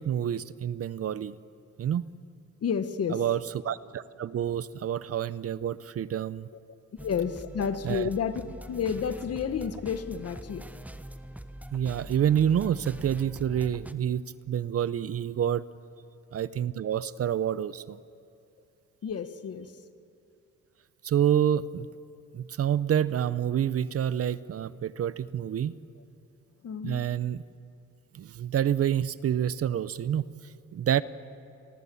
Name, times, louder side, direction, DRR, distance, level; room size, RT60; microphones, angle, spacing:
voice 1, 0.0-1.4 1.8-2.0 3.1-6.5 7.8-8.1 11.7-15.6 16.3-18.0 21.0-21.9 22.3-25.8 26.8-27.4 28.1-31.0, right 9 dB, 50° right, 17 dB, 0.7 m, -28 dB
voice 2, 2.6-3.2 7.0-8.4 8.7-10.6 19.0-19.7 26.6-27.0, left 7 dB, 55° left, 10 dB, 1.5 m, -30 dB
sound 1, 7.0-13.9, right 1 dB, 5° right, 1.1 m, -44 dB
29.5 x 22.5 x 7.1 m, 2.6 s
cardioid pair, 90°, 30 cm